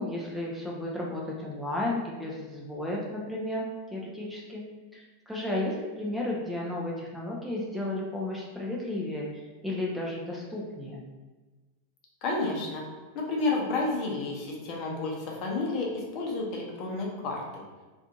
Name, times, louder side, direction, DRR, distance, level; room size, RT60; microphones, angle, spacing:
voice 1, 0.0-3.7 3.9-4.6 4.9-11.0, left 1 dB, 5° right, -4 dB, 0.5 m, -33 dB
voice 2, 12.2-12.9 13.1-17.4, left 3 dB, 40° left, -1 dB, 0.7 m, -30 dB
3.2 x 2.5 x 2.8 m, 1.3 s
figure-of-eight pair, 90°, 0 cm